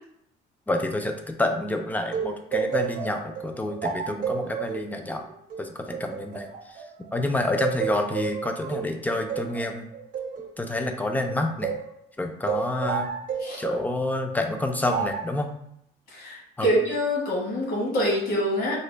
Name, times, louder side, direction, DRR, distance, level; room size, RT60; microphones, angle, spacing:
voice 1, 0.7-5.3 5.6-6.5 7.1-9.9 10.6-11.7 12.2-13.1 13.6-15.5 16.6-16.7, left 2 dB, 10° left, 5 dB, 0.4 m, -28 dB
sound 1, 2.1-7.1 7.6-11.9 12.5-13.9 14.9-15.4, right 6 dB, 50° right, 0.6 m, -31 dB
voice 2, 16.1-18.8, equal, 65° left, -3 dB, 1.5 m, -25 dB
3.9 x 2.1 x 3.3 m, 0.72 s
cardioid pair, 110°, 17 cm